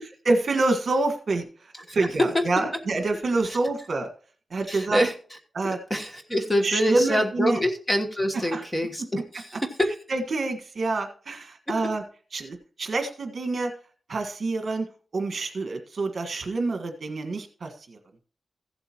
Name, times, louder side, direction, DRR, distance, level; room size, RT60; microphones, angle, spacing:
voice 1, 0.3-1.5 1.9-4.1 4.5-5.0 5.5-5.8 6.6-7.6 8.3-8.6 10.1-12.0 12.3-13.7 14.1-14.9 15.1-18.0, right 3 dB, 50° right, 5 dB, 1.6 m, -27 dB
voice 2, 1.9-2.4 3.5-3.6 4.7-5.1 5.6-9.9, equal, 10° left, 4 dB, 1.3 m, -25 dB
15.5 x 7.9 x 3.0 m, 0.42 s
wide cardioid pair, 155°, 0 cm